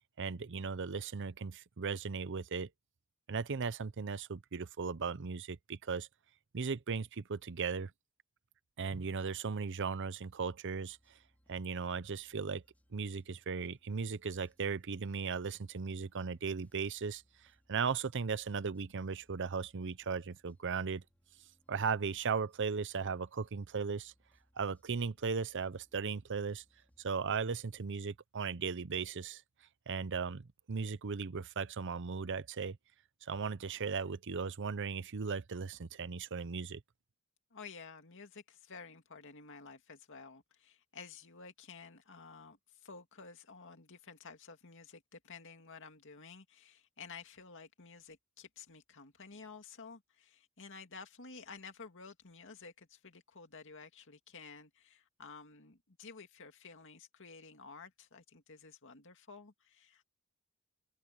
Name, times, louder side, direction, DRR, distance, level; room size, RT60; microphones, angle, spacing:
voice 1, 0.2-2.7 3.3-6.1 6.5-7.9 8.8-11.0 11.5-12.6 12.9-17.2 17.7-21.0 21.7-24.1 24.6-26.6 27.0-29.4 29.9-32.8 33.2-36.8, right 5 dB, 55° right, 0.7 m, -37 dB
sound 1, 10.8-27.9, equal, 5° left, 4.9 m, -73 dB
voice 2, 37.5-60.1, left 5 dB, 60° left, 2.3 m, -52 dB
head